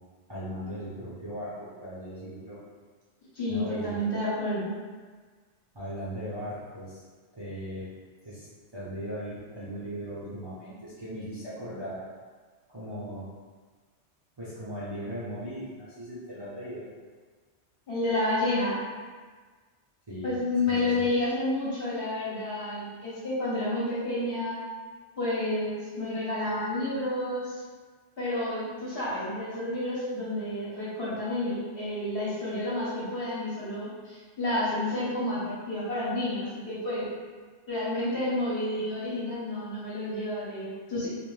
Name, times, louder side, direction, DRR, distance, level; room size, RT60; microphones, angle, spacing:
voice 1, 0.3-2.6 3.5-4.0 5.7-7.0 7.4-7.9 8.2-8.5 8.7-12.0 12.7-13.3 14.4-16.9 20.1-20.3 20.7-21.0, equal, 25° right, -12 dB, 0.7 m, -38 dB
voice 2, 3.3-4.7 17.9-18.8 20.2-24.6 25.2-27.6 28.2-37.1 37.7-41.1, left 1 dB, 60° left, -9 dB, 1.1 m, -30 dB
2.6 x 2.4 x 3.2 m, 1.5 s
omnidirectional pair, 1.2 m